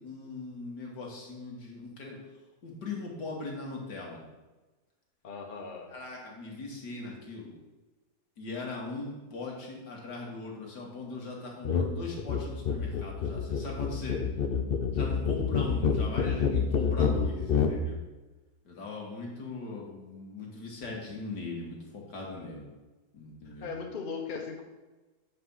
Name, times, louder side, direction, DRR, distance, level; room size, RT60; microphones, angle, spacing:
voice 1, 0.0-2.2 2.6-4.3 5.9-7.5 8.4-14.2 14.9-18.0 18.6-22.7 23.1-23.7, left 3 dB, 90° left, -2 dB, 2.4 m, -40 dB
voice 2, 5.2-5.9 22.3-22.7 23.6-24.6, left 5 dB, 35° left, 2 dB, 1.0 m, -38 dB
sound 1, 11.6-11.9 12.2-17.8, left 6 dB, 55° left, 0.6 m, -27 dB
7.6 x 5.4 x 5.6 m, 1.2 s
omnidirectional pair, 1.7 m